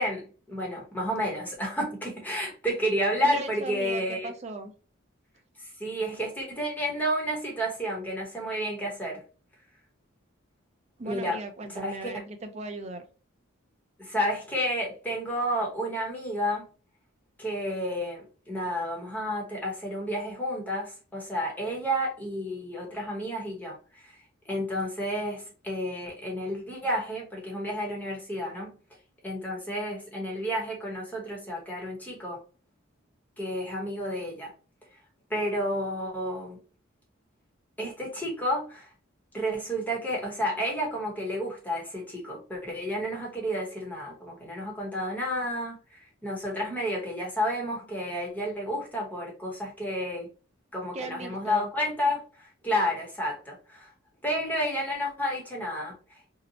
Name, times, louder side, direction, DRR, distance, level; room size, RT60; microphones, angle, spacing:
voice 1, 0.0-4.3 5.6-9.2 11.0-11.4 11.7-12.1 14.0-16.6 17.4-28.7 29.2-32.4 33.4-34.5 35.3-36.6 37.8-38.9 39.3-50.3 50.7-53.9 54.2-55.9, equal, 10° left, 0.9 m, -31 dB
voice 2, 3.2-4.7 11.0-13.0 50.9-51.7, right 3 dB, 30° right, 0.4 m, -38 dB
2.7 x 2.1 x 2.7 m
head